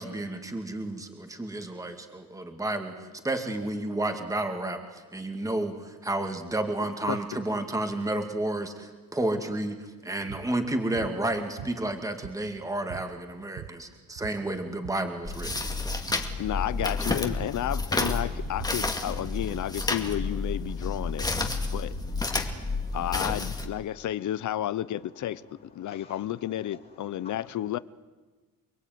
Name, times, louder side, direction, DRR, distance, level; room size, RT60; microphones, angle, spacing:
voice 1, 0.0-15.5, right 1 dB, 10° right, 2.4 m, -31 dB
sound 1, 10.3-10.5 11.0-11.2 11.6-12.6 12.9-13.1 13.4-13.9 14.2-15.1 15.4-15.7 16.1-16.3 16.8-17.0 17.4-19.4, right 11 dB, 65° right, 1.3 m, -43 dB
sound 2, 15.3-23.7, left 3 dB, 10° left, 2.2 m, -30 dB
voice 2, 16.4-21.9 22.9-25.4 25.7-27.8, left 12 dB, 55° left, 0.8 m, -32 dB
voice 3, 21.5-21.8 22.3-23.0 25.8-26.2 27.1-27.5, left 5 dB, 30° left, 2.9 m, -52 dB
28.5 x 22.0 x 9.4 m
cardioid pair, 155°, 36 cm